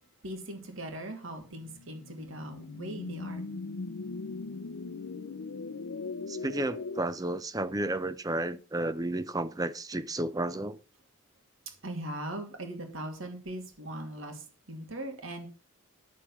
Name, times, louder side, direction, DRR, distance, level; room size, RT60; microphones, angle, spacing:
voice 1, 0.2-3.4 11.8-15.5, right 1 dB, 70° right, 2.6 m, -40 dB
sound 1, 1.5-7.0, left 3 dB, 70° left, 0.6 m, -39 dB
voice 2, 6.3-10.8, right 1 dB, 15° right, 0.6 m, -32 dB
11.0 x 6.8 x 5.7 m
head